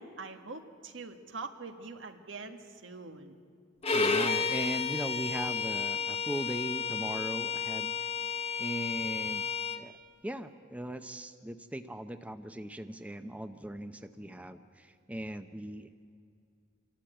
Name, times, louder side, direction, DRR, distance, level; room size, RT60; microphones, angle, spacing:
voice 1, 0.0-3.3, right 3 dB, 85° right, 6 dB, 1.7 m, -44 dB
Bowed string instrument, 3.8-9.8, left 5 dB, 30° left, 1.1 m, -32 dB
voice 2, 3.9-8.3 8.6-10.0 10.2-16.0, right 1 dB, 10° right, 9 dB, 0.6 m, -39 dB
27.5 x 13.0 x 9.1 m, 2.2 s
head